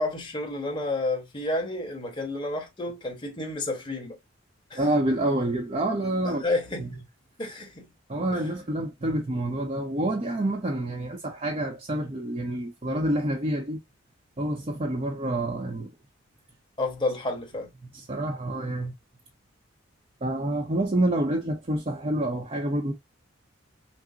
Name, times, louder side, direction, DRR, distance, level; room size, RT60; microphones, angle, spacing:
voice 1, 0.0-4.2 4.7-4.9 6.2-7.0 7.4-7.9 8.3-8.4 16.8-17.7, left 2 dB, 25° left, 1.2 m, -30 dB
voice 2, 4.7-6.5 6.8-6.9 8.1-13.8 14.4-15.9 17.8-18.9 20.2-22.9, right 1 dB, 30° right, 0.7 m, -28 dB
6.0 x 2.0 x 2.7 m
head